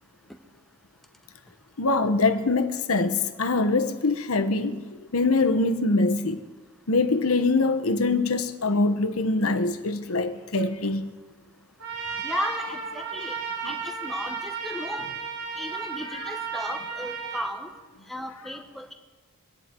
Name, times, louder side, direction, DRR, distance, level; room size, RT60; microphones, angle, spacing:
voice 1, 1.8-6.4 6.9-11.1, left 3 dB, 75° left, 1.1 m, -24 dB
Trumpet, 11.8-17.5, right 5 dB, 70° right, 4.8 m, -34 dB
voice 2, 12.2-13.4 13.6-15.1 15.6-17.7 18.1-18.9, equal, ahead, 1.1 m, -35 dB
25.0 x 10.5 x 4.6 m
head